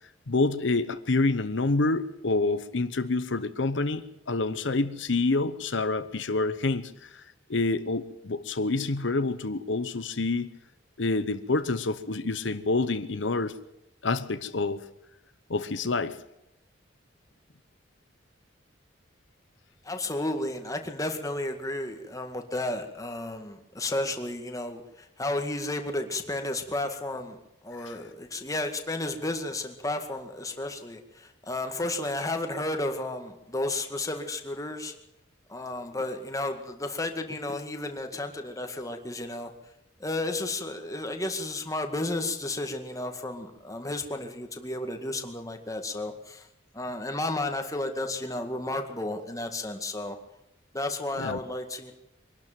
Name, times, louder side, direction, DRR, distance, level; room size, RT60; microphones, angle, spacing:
voice 1, 0.3-7.2 7.5-10.5 11.0-13.6 14.0-14.8 15.5-16.2 27.8-28.0 51.2-51.4, left 3 dB, 75° left, 11 dB, 0.9 m, -27 dB
voice 2, 19.8-27.4 27.6-34.9 35.5-39.5 40.0-46.5 46.7-50.2 50.7-51.9, left 2 dB, 20° left, 5 dB, 2.0 m, -32 dB
23.5 x 12.0 x 9.1 m, 0.87 s
head